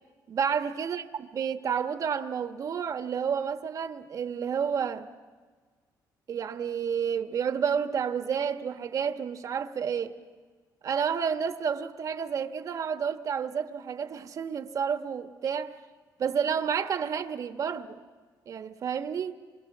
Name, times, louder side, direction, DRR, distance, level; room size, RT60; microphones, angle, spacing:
voice 1, 0.3-1.0 1.3-5.1 6.3-10.2 10.8-15.8 16.2-18.0 18.5-19.3, right 7 dB, 50° right, 1.4 m, -30 dB
27.5 x 24.5 x 7.4 m
cardioid pair, 135°, 8 cm